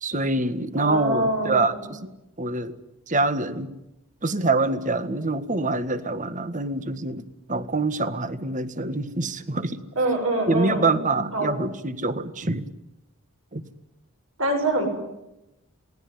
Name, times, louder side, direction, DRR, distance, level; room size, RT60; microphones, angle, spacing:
voice 1, 0.0-2.1 2.4-2.7 3.1-3.7 4.2-9.8 10.5-12.6 13.5-13.6, right 2 dB, 35° right, 12 dB, 1.7 m, -25 dB
voice 2, 0.8-1.8 10.0-11.0 11.3-11.5 14.4-14.9, right 2 dB, 70° right, 3 dB, 7.6 m, -25 dB
28.0 x 19.5 x 9.6 m, 0.92 s
head